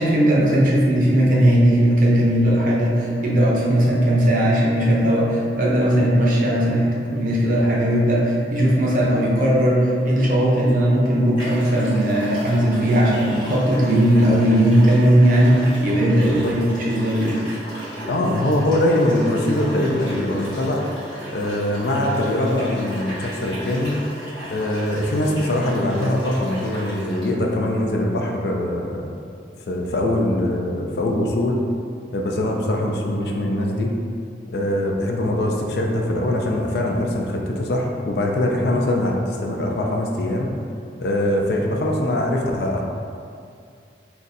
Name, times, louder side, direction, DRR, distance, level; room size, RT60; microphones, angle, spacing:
voice 1, 0.0-17.4, equal, 45° right, -4 dB, 0.5 m, -18 dB
sound 1, 10.6-10.7 11.4-27.3, right 1 dB, 25° left, 1.0 m, -35 dB
voice 2, 16.2-16.5 18.1-20.9 21.3-24.0 24.5-29.1 29.7-31.6 32.1-33.9 34.5-40.5 41.0-42.8, left 1 dB, 60° left, 0 dB, 0.4 m, -22 dB
2.6 x 2.3 x 3.9 m, 2.3 s
head